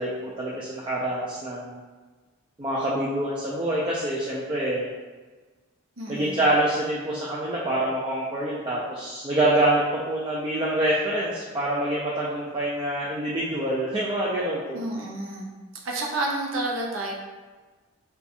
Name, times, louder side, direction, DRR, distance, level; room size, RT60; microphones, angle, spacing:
voice 1, 0.0-1.8 2.6-4.9 6.1-14.8, right 1 dB, 25° right, -6 dB, 0.3 m, -26 dB
voice 2, 6.0-6.4 14.7-15.5 15.8-17.1, right 2 dB, 70° right, -1 dB, 0.6 m, -30 dB
2.6 x 2.3 x 4.1 m, 1.3 s
head